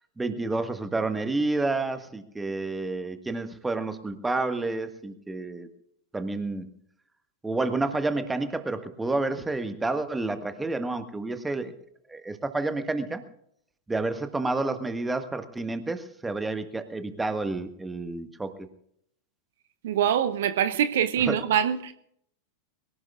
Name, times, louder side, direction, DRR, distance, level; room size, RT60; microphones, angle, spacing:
voice 1, 0.2-5.7 6.1-6.7 7.4-11.7 12.1-13.2 13.9-18.7 21.3-21.4, right 2 dB, 10° right, 9 dB, 1.6 m, -29 dB
voice 2, 19.8-21.9, right 9 dB, 55° right, 11 dB, 0.8 m, -24 dB
23.0 x 17.5 x 2.4 m, 0.69 s
figure-of-eight pair, 90°, 0 cm